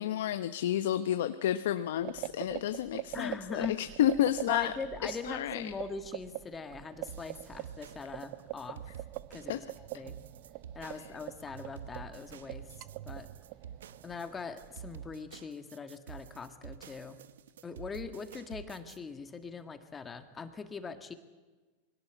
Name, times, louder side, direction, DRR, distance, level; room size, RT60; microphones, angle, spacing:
voice 1, 0.0-4.7 5.0-5.7 9.5-9.6, left 11 dB, 75° left, 10 dB, 0.9 m, -31 dB
Coffee Maker Brewing, 2.0-15.1, right 17 dB, 50° right, 0.7 m, -44 dB
voice 2, 3.1-3.8 4.5-8.9 9.3-10.2 10.8-12.7 13.1-13.3 14.0-17.2 17.6-21.1, left 5 dB, 20° left, 8 dB, 1.7 m, -41 dB
sound 1, 7.1-19.0, right 8 dB, 85° right, 0.9 m, -49 dB
21.5 x 18.0 x 8.2 m, 1.3 s
hypercardioid pair, 125°, 0 cm